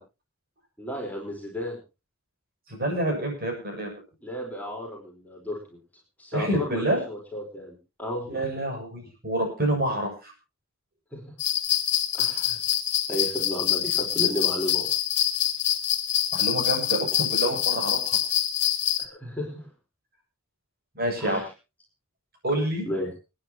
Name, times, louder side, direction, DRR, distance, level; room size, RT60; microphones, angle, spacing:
voice 1, 0.8-1.8 4.2-5.6 6.2-7.7 8.0-8.4 11.1-11.2 12.1-12.6 13.1-14.9 19.0-19.7 21.2-21.4 22.8-23.1, left 1 dB, 10° left, -1 dB, 4.2 m, -33 dB
voice 2, 2.7-3.9 6.3-7.0 8.3-10.3 16.3-18.2 21.0-21.4 22.4-22.8, right 1 dB, 45° right, 1 dB, 7.4 m, -27 dB
sound 1, 11.4-19.0, left 11 dB, 55° left, 1.6 m, -25 dB
29.0 x 9.8 x 2.9 m, 0.29 s
head